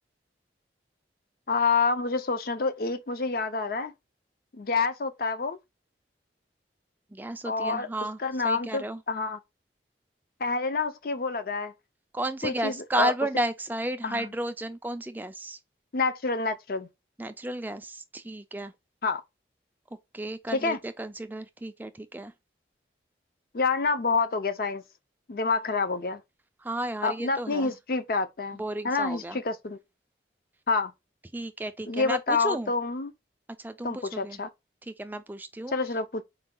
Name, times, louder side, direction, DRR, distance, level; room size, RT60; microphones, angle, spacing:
voice 1, 1.5-3.9 4.5-5.6 7.4-7.9 8.2-9.4 10.4-11.7 12.4-13.1 14.0-14.3 15.9-16.9 19.0-19.2 20.5-20.8 23.5-24.8 25.3-26.2 27.0-29.8 30.7-30.9 31.9-33.1 33.8-34.5 35.7-36.2, left 4 dB, 55° left, 0.5 m, -28 dB
voice 2, 7.1-8.2 8.4-9.0 12.1-15.6 17.2-18.7 20.1-22.3 26.6-27.7 28.6-29.4 31.3-32.7 33.6-34.4 34.8-35.7, right 1 dB, 10° right, 0.3 m, -33 dB
4.6 x 2.3 x 3.6 m
head